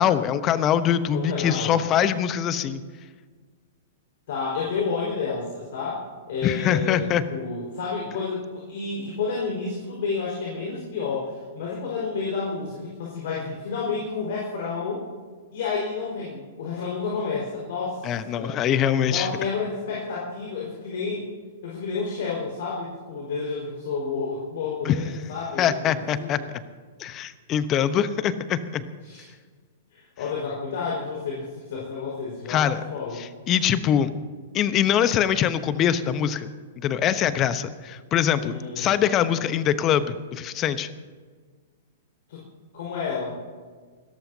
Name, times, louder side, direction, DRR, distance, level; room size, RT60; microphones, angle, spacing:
voice 1, 0.0-2.8 6.4-7.3 18.0-19.3 24.8-25.0 25.6-26.4 27.0-28.8 32.5-32.8 33.2-34.1 34.5-36.5 36.8-40.9, left 9 dB, 30° left, 13 dB, 1.0 m, -23 dB
voice 2, 1.1-1.8 4.3-15.0 15.5-18.6 19.1-21.3 21.6-26.4 29.0-29.2 29.9-33.3 38.4-39.1 42.3-42.4 42.7-43.3, left 4 dB, 55° left, -4 dB, 4.9 m, -30 dB
28.5 x 14.0 x 2.8 m, 1.5 s
figure-of-eight pair, 105°, 0 cm